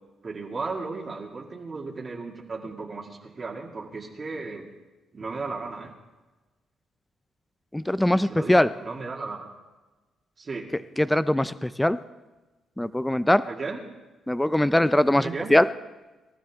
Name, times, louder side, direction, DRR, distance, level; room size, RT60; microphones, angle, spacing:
voice 1, 0.2-4.7 5.1-5.9 8.1-9.5 10.4-10.7 13.4-13.8 15.2-15.5, right 4 dB, 35° right, -2 dB, 2.2 m, -35 dB
voice 2, 7.7-8.7 11.0-12.0 12.8-13.4 14.3-15.7, left 1 dB, 5° left, 14 dB, 0.4 m, -21 dB
25.0 x 13.0 x 3.6 m, 1.2 s
cardioid pair, 90°, 0 cm